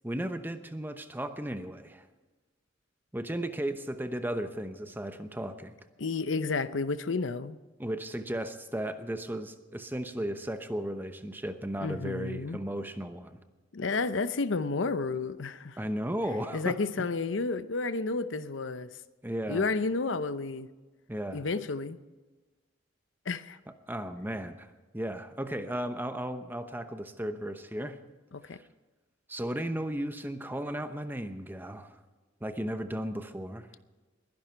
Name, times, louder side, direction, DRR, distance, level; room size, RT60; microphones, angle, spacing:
voice 1, 0.0-2.0 3.1-5.7 7.8-13.4 15.8-17.1 19.2-19.6 21.1-21.4 23.9-28.0 29.3-32.0 32.4-33.7, right 1 dB, 10° right, 0.9 m, -35 dB
voice 2, 6.0-7.6 11.8-12.6 13.7-15.8 16.5-18.9 19.5-20.7 21.3-22.0 23.3-23.6 28.3-28.6, left 3 dB, 90° left, 0.7 m, -31 dB
21.5 x 11.0 x 4.5 m
head